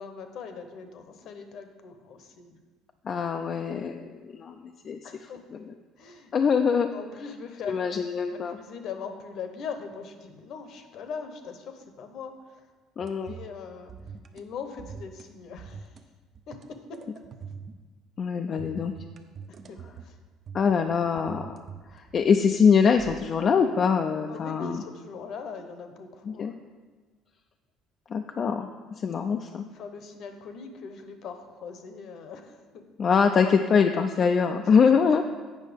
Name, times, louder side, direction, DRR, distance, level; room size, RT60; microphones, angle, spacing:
voice 1, 0.0-2.6 5.0-5.4 6.0-6.3 6.9-7.8 8.3-12.7 13.2-13.9 14.3-15.9 16.5-17.0 19.5-19.8 20.0-20.2 24.3-26.5 29.7-32.8 33.4-33.5, left 5 dB, 60° left, 7 dB, 0.9 m, -40 dB
voice 2, 3.1-4.5 4.8-5.0 5.5-5.6 6.3-6.9 7.7-8.6 13.0-13.3 18.2-18.9 20.5-21.6 21.9-24.8 26.3-26.5 28.1-28.7 29.0-29.6 33.0-35.3, left 6 dB, 40° left, 5 dB, 0.4 m, -23 dB
sound 1, 13.0-13.6 13.9-14.4 14.8-15.3 15.6-16.0 16.3-17.9 18.6-20.1 20.5-22.5 23.0-23.2, right 6 dB, 40° right, 0.6 m, -44 dB
8.3 x 5.4 x 5.1 m, 1.4 s
cardioid pair, 120°, 0 cm